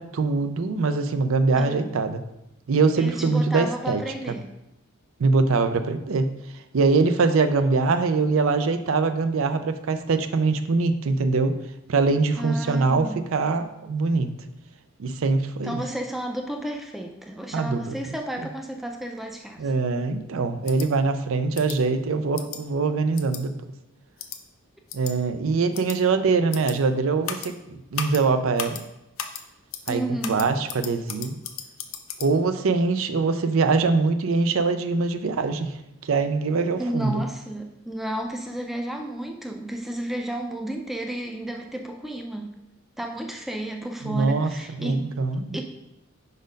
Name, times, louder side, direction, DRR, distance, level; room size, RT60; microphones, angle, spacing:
voice 1, 0.0-2.2 2.7-4.0 5.2-6.3 6.7-11.6 11.9-14.3 15.0-15.8 17.5-18.0 19.6-23.5 24.9-28.8 29.9-31.4 32.2-35.8 36.0-37.1 44.0-44.5 44.8-45.6, right 4 dB, 75° right, 10 dB, 0.5 m, -23 dB
voice 2, 1.6-1.9 3.0-4.5 12.4-13.2 15.6-19.7 29.9-30.6 36.8-42.6 43.0-45.2 45.5-45.6, right 1 dB, ahead, 3 dB, 0.4 m, -32 dB
sound 1, 20.7-20.9 21.5-21.8 22.4-22.6 23.2-23.4 24.2-24.4 24.9-25.1 25.7-26.0 26.5-26.7 27.2-27.5 27.9-28.2 28.6-28.8 29.2-29.4 29.7-29.9 30.2-32.3, left 8 dB, 75° left, 0.6 m, -34 dB
5.2 x 4.2 x 5.1 m, 0.88 s
head